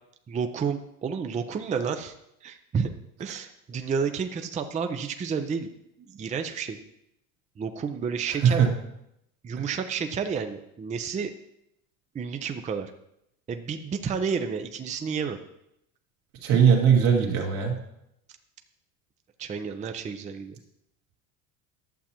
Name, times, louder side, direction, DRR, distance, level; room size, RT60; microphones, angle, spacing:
voice 1, 0.3-2.1 2.4-2.9 3.2-5.7 6.0-6.8 7.6-8.6 9.4-11.3 12.1-12.9 13.5-15.4 19.4-20.6, right 6 dB, 15° right, 7 dB, 0.5 m, -30 dB
voice 2, 16.4-17.8, right 7 dB, 70° right, 0 dB, 2.0 m, -20 dB
11.5 x 7.0 x 2.9 m, 0.79 s
hypercardioid pair, 75°, 43 cm